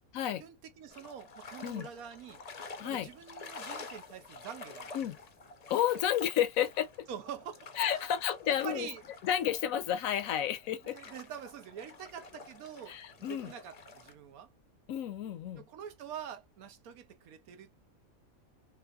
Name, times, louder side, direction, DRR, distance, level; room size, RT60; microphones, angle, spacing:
voice 1, 0.4-2.4 2.8-4.9 7.1-7.7 8.5-9.0 10.8-14.5 15.6-17.9, right 8 dB, 85° right, 1.2 m, -45 dB
sound 1, 0.9-14.1, left 4 dB, 45° left, 0.5 m, -49 dB
voice 2, 5.7-6.9 7.8-8.9 9.2-11.0 12.9-13.5 14.9-15.6, left 10 dB, 75° left, 1.0 m, -31 dB
3.3 x 3.2 x 2.3 m
omnidirectional pair, 1.5 m